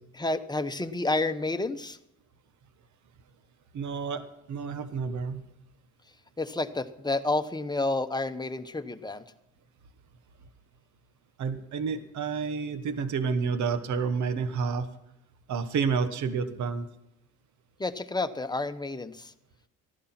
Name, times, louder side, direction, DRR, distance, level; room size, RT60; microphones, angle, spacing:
voice 1, 0.1-2.0 6.4-9.2 17.8-19.3, left 2 dB, 15° left, 9 dB, 1.1 m, -30 dB
voice 2, 3.7-5.4 11.4-14.9 15.5-16.9, right 5 dB, 65° right, 10 dB, 1.3 m, -30 dB
15.5 x 11.5 x 5.9 m, 0.81 s
supercardioid pair, 70°, 31 cm